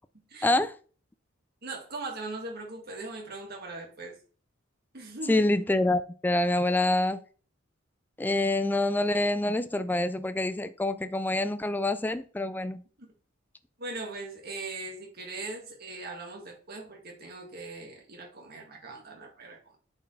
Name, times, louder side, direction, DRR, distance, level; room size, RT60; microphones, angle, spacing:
voice 1, 0.4-0.7 5.3-7.2 8.2-12.8, left 2 dB, 10° left, 0.3 m, -26 dB
voice 2, 1.6-4.2 4.9-5.4 13.0-13.1 13.8-19.8, right 3 dB, 50° right, 2.0 m, -40 dB
8.4 x 4.6 x 3.3 m
head